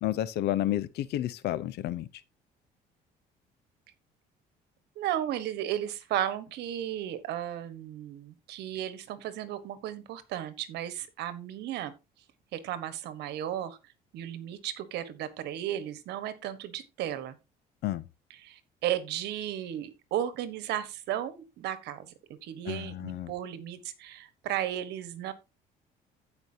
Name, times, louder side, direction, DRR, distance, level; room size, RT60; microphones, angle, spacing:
voice 1, 0.0-2.1 17.8-18.0 22.7-23.3, left 13 dB, 75° left, 0.7 m, -31 dB
voice 2, 4.9-11.9 12.5-13.8 14.1-17.3 18.3-22.1 22.4-25.3, right 11 dB, 80° right, 1.3 m, -34 dB
15.5 x 5.2 x 2.8 m
cardioid pair, 110°, 17 cm